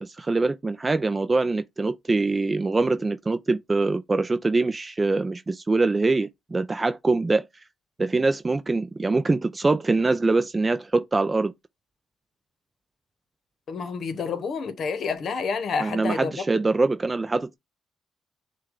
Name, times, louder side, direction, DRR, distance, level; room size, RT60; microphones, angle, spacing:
voice 1, 0.0-7.5 8.0-11.5 15.8-17.6, right 3 dB, 25° right, 0.3 m, -24 dB
voice 2, 13.7-16.6, left 5 dB, 60° left, 0.9 m, -29 dB
6.0 x 2.3 x 3.7 m
cardioid pair, 90°, 0 cm